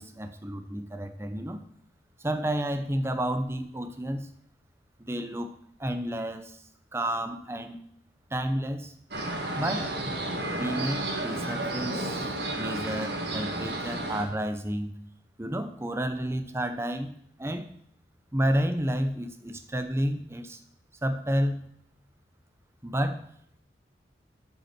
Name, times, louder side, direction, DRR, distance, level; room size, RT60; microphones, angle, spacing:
voice 1, 0.0-1.6 2.2-4.3 5.0-5.5 5.8-6.6 6.9-7.8 8.3-8.9 9.6-9.9 10.5-14.9 15.4-17.1 17.4-17.7 18.3-20.6 21.0-21.7 22.8-23.2, equal, 15° right, 8 dB, 0.7 m, -30 dB
sound 1, 9.1-14.2, right 1 dB, 70° right, 1.8 m, -32 dB
8.8 x 5.6 x 6.0 m, 0.68 s
head